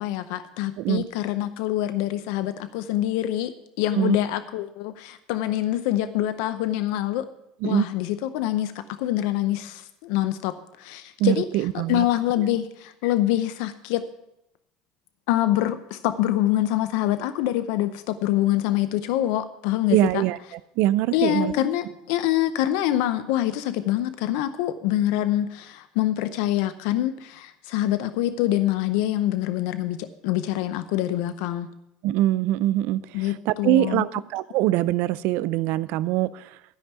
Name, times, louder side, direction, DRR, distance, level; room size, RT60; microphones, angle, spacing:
voice 1, 0.0-3.5 3.8-7.3 7.6-11.5 11.7-14.0 15.3-20.2 21.1-31.7 33.1-34.0, left 13 dB, 75° left, 12 dB, 0.6 m, -25 dB
voice 2, 11.2-12.1 19.9-20.4 20.8-21.5 32.0-36.5, right 14 dB, 65° right, 18 dB, 0.5 m, -23 dB
13.0 x 5.3 x 8.0 m, 0.83 s
hypercardioid pair, 85°, 3 cm